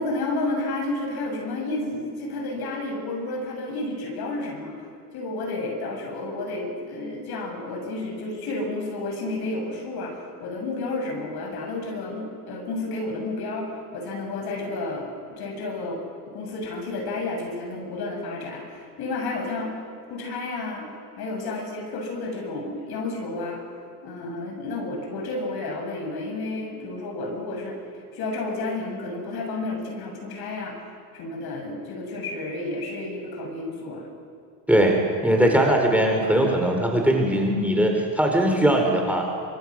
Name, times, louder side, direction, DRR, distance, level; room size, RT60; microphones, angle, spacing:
voice 1, 0.0-4.7 5.1-16.0 16.3-19.7 20.1-20.8 21.2-23.6 24.0-27.8 28.1-30.8 31.1-34.1, left 2 dB, 50° left, 2 dB, 7.8 m, -31 dB
voice 2, 34.7-39.3, right 1 dB, 5° right, 1 dB, 4.2 m, -20 dB
25.0 x 24.5 x 6.4 m, 2.4 s
hypercardioid pair, 85°, 48 cm